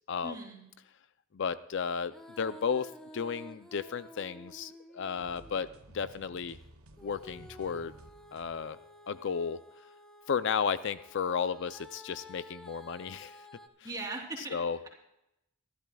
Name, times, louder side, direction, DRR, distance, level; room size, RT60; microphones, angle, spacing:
voice 1, 0.2-0.6 13.8-14.6, right 2 dB, 15° right, -2 dB, 3.2 m, -39 dB
voice 2, 1.3-5.7 5.9-6.6 7.0-7.9 8.3-8.8 9.1-9.6 10.3-13.4 14.5-14.8, left 6 dB, 60° left, 13 dB, 0.4 m, -33 dB
Female singing, 2.0-5.8 7.0-13.7, left 1 dB, 5° left, 0.9 m, -52 dB
sound 1, 5.2-8.9, right 2 dB, 85° right, 1.2 m, -55 dB
24.5 x 12.0 x 2.3 m, 0.85 s
head